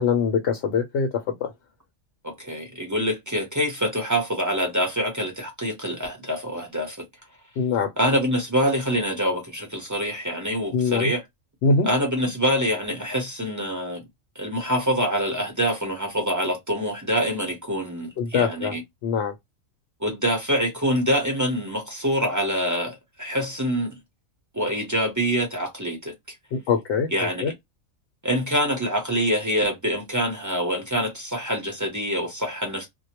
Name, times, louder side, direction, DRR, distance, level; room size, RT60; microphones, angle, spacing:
voice 1, 0.0-1.5 7.6-7.9 10.7-11.1 11.6-11.9 18.2-18.7 19.0-19.3 26.5-27.1 27.4-27.5, left 5 dB, 65° left, 0.8 m, -23 dB
voice 2, 2.2-7.0 8.0-11.2 11.8-14.0 14.4-18.8 20.0-24.0 24.5-26.1 27.1-27.4 28.2-32.9, equal, 20° right, 0.5 m, -25 dB
2.2 x 2.0 x 2.8 m
omnidirectional pair, 1.4 m